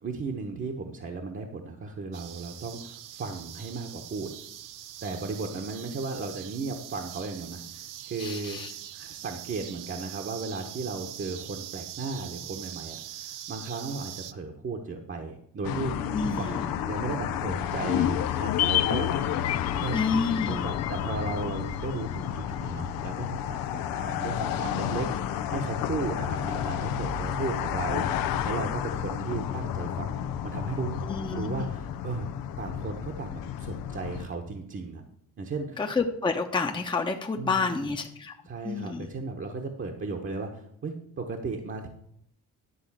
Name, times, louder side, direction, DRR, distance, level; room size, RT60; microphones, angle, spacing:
voice 1, 0.0-4.3 5.0-15.9 16.2-19.2 19.8-20.0 20.5-23.6 23.9-31.0 31.3-32.3 32.6-35.0 35.4-35.8 37.4-37.9 38.4-41.9, right 4 dB, 40° right, 2 dB, 1.2 m, -35 dB
sound 1, 2.1-14.3, right 12 dB, 70° right, 0.7 m, -43 dB
voice 2, 8.2-8.7 16.1-16.7 19.9-20.7 31.0-31.7 35.8-38.3 38.6-39.1, left 4 dB, 15° left, 3 dB, 0.9 m, -29 dB
sound 2, 15.6-34.3, left 9 dB, 85° left, 0.7 m, -31 dB
sound 3, 17.8-22.3 22.6-22.7, left 14 dB, 55° left, 0.4 m, -30 dB
11.0 x 3.8 x 7.4 m, 0.73 s
cardioid pair, 85°, 33 cm